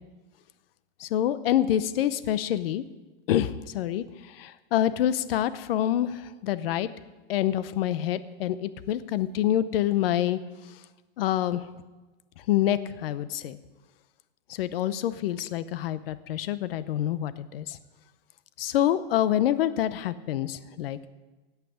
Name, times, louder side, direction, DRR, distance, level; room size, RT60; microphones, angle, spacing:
voice 1, 1.0-2.8 3.3-6.9 7.3-10.4 10.7-10.8 11.2-11.7 12.5-13.6 14.5-17.8 18.6-21.1, left 11 dB, 70° left, 14 dB, 0.8 m, -27 dB
17.0 x 5.9 x 8.5 m, 1.2 s
supercardioid pair, 170°, 30 cm